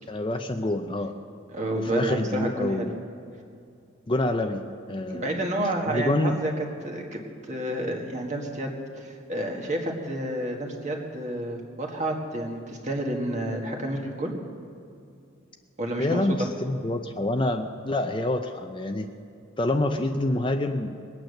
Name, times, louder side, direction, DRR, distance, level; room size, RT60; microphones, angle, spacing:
voice 1, 0.1-1.2 1.7-2.9 4.1-4.6 4.9-5.4 5.9-6.4 16.0-19.1 19.6-21.0, left 1 dB, 25° left, 6 dB, 0.5 m, -27 dB
voice 2, 1.5-2.9 5.1-7.2 7.5-14.3 15.8-16.5, right 1 dB, 35° right, 1 dB, 1.7 m, -30 dB
21.0 x 9.0 x 6.5 m, 2.4 s
head